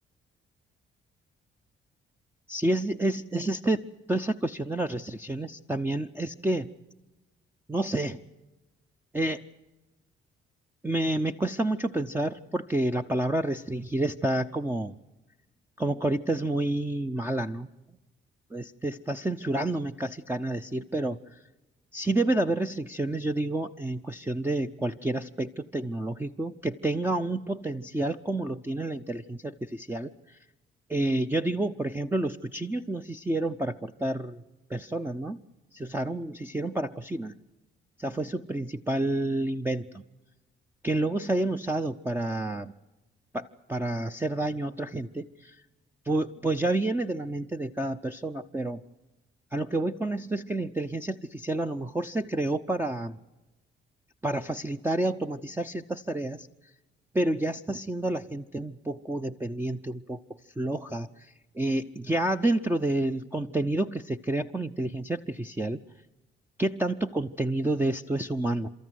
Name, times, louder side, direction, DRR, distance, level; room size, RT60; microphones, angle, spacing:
voice 1, 2.5-3.8 4.1-6.7 7.7-8.2 9.1-9.4 10.8-14.9 15.8-17.7 18.5-21.4 21.9-30.4 30.9-34.4 34.7-35.4 35.7-37.4 38.0-40.0 40.8-42.7 43.3-45.6 46.0-48.8 49.5-53.2 54.2-56.5 57.1-60.2 60.4-65.8 66.6-68.7, right 2 dB, 10° right, 7 dB, 0.7 m, -29 dB
30.0 x 13.5 x 9.4 m, 1.1 s
cardioid pair, 90°, 20 cm